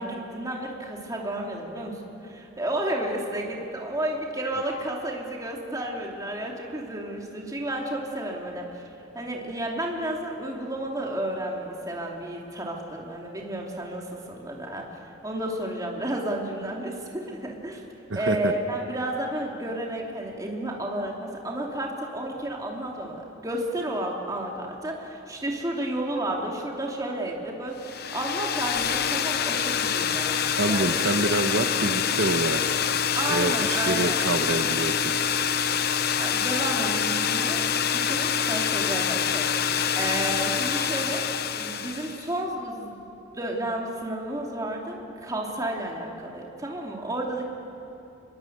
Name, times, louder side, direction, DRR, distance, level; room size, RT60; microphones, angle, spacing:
voice 1, 0.0-8.8 9.1-14.8 15.2-17.8 18.1-30.4 30.6-31.0 33.1-34.2 36.2-41.2 41.5-43.0 43.3-47.5, right 1 dB, 20° right, -1 dB, 3.0 m, -32 dB
voice 2, 18.1-18.5 30.6-32.6 33.3-35.1, right 2 dB, 90° right, 7 dB, 1.3 m, -26 dB
sound 1, 27.8-42.3, left 7 dB, 55° left, 0.8 m, -26 dB
26.5 x 21.0 x 8.0 m, 2.9 s
head